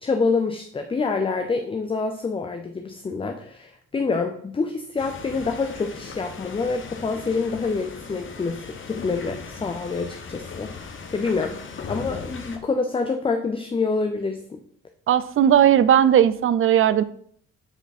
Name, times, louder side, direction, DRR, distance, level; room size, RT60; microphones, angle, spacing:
voice 1, 0.0-11.6 11.9-14.6, left 4 dB, 20° left, 5 dB, 0.5 m, -27 dB
sound 1, 5.0-12.6, left 5 dB, 40° left, 1.0 m, -38 dB
voice 2, 15.1-17.0, right 10 dB, 45° right, 16 dB, 0.4 m, -17 dB
7.1 x 3.4 x 4.1 m, 0.64 s
cardioid pair, 90°, 30 cm